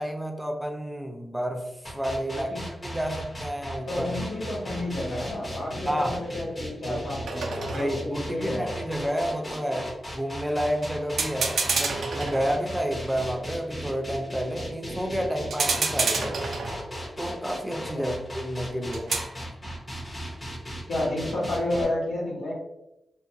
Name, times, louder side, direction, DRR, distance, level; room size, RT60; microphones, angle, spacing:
voice 1, 0.0-4.3 5.9-6.2 6.9-7.0 7.7-16.4 17.2-19.1, equal, 5° right, 2 dB, 0.5 m, -30 dB
sound 1, 1.8-21.8, equal, 35° left, 0.9 m, -37 dB
voice 2, 3.9-8.8 17.9-18.2 20.9-22.5, left 1 dB, 90° left, -6 dB, 1.2 m, -30 dB
sound 2, 4.7-4.9 7.3-8.3 10.8-10.9 11.2-12.9 15.5-17.1 18.9-19.4, right 4 dB, 85° right, 0.3 m, -29 dB
2.5 x 2.2 x 2.6 m, 0.86 s
cardioid pair, 60°, 0 cm